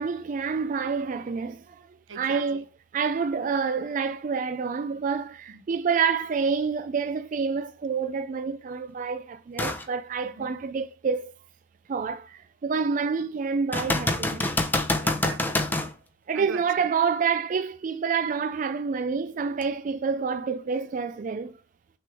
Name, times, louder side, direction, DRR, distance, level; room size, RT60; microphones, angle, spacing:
voice 1, 0.0-1.8 2.1-2.6 2.9-11.3 11.9-14.5 16.3-21.5, right 5 dB, 40° right, 0.3 m, -28 dB
voice 2, 2.1-2.6 5.5-5.6 10.2-10.5 14.7-15.8 16.3-16.9 20.7-21.0, right 4 dB, 80° right, 0.8 m, -42 dB
sound 1, 9.6-9.9 10.4-10.5 13.7-15.9 19.6-19.7, left 2 dB, 10° left, 0.6 m, -26 dB
6.3 x 3.4 x 6.0 m
head